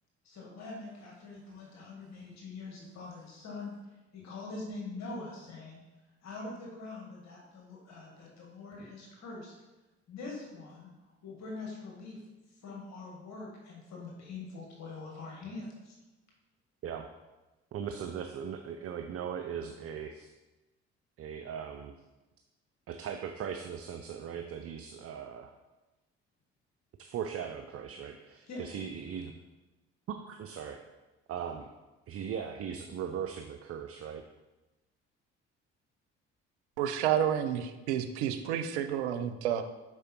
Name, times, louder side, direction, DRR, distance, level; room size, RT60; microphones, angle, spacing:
voice 1, 0.2-3.7 4.1-5.8 6.2-9.5 10.1-12.2 12.6-15.9 28.5-28.6, left 3 dB, 55° left, -2 dB, 1.9 m, -44 dB
voice 2, 17.7-20.3 21.2-21.9 22.9-25.5 27.0-29.3 30.1-30.8 31.3-31.7 32.1-34.2, right 8 dB, 45° right, 6 dB, 0.6 m, -39 dB
voice 3, 36.8-39.6, right 9 dB, 85° right, 8 dB, 0.6 m, -30 dB
6.0 x 4.8 x 4.5 m, 1.1 s
hypercardioid pair, 55°, 33 cm